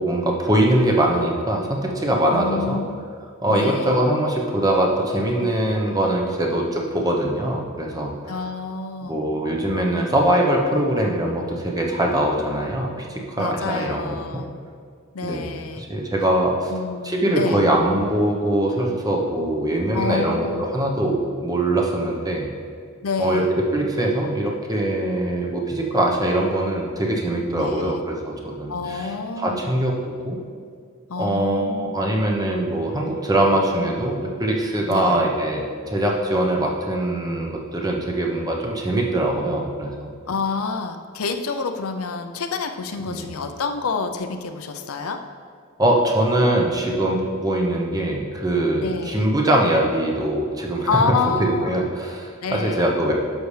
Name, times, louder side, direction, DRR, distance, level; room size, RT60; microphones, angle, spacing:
voice 1, 0.0-2.8 3.4-8.1 9.0-14.4 15.2-15.5 15.9-16.7 17.0-22.5 23.2-29.1 29.4-30.4 31.2-40.1 43.1-43.3 45.8-50.9 51.4-53.1, right 1 dB, 20° right, 0 dB, 0.9 m, -22 dB
voice 2, 2.3-3.1 3.5-4.1 8.3-9.2 13.4-14.5 15.1-15.9 16.7-17.6 19.9-20.6 23.0-23.5 27.5-28.0 28.7-29.8 31.1-31.9 34.9-35.2 40.3-45.2 48.8-49.3 50.9-51.8 52.4-52.9, left 4 dB, 85° left, 6 dB, 0.6 m, -28 dB
10.5 x 6.8 x 3.3 m, 2.1 s
head